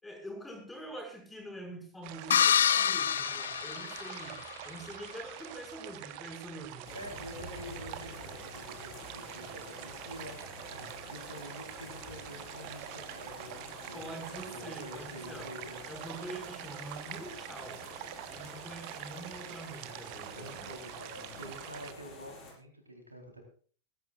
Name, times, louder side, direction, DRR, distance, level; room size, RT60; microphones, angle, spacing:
voice 1, 0.0-4.4 4.6-7.0 13.9-15.5 15.9-17.8 18.3-20.7 21.2-21.5, right 1 dB, 10° left, 4 dB, 5.9 m, -45 dB
sound 1, 2.0-21.9, right 14 dB, 45° right, 1.0 m, -45 dB
sound 2, 2.3-4.5, left 8 dB, 65° left, 0.5 m, -27 dB
sound 3, 6.8-22.5, left 3 dB, 30° left, 6.6 m, -49 dB
voice 2, 6.9-10.5 10.7-15.8 19.9-23.4, equal, 85° right, 3 dB, 4.0 m, -47 dB
21.0 x 14.5 x 2.5 m, 0.43 s
figure-of-eight pair, 90°, 0 cm